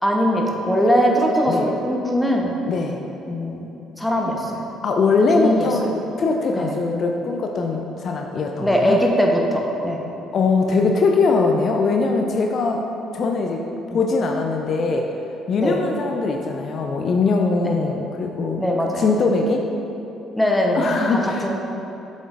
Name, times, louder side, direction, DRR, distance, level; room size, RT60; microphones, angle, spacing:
voice 1, 0.0-2.6 3.2-3.7 4.0-4.6 5.3-5.7 6.5-6.8 8.6-10.0 13.9-14.0 15.6-15.8 17.6-17.9 18.6-19.1 20.3-21.5, equal, 5° left, -1 dB, 1.0 m, -21 dB
voice 2, 2.7-3.0 4.8-5.8 6.2-9.0 10.3-12.8 13.1-13.7 13.9-15.0 15.5-18.6 19.0-19.6 20.8-21.5, left 4 dB, 50° left, 2 dB, 0.4 m, -21 dB
7.5 x 5.2 x 2.5 m, 2.9 s
hypercardioid pair, 55°, 0 cm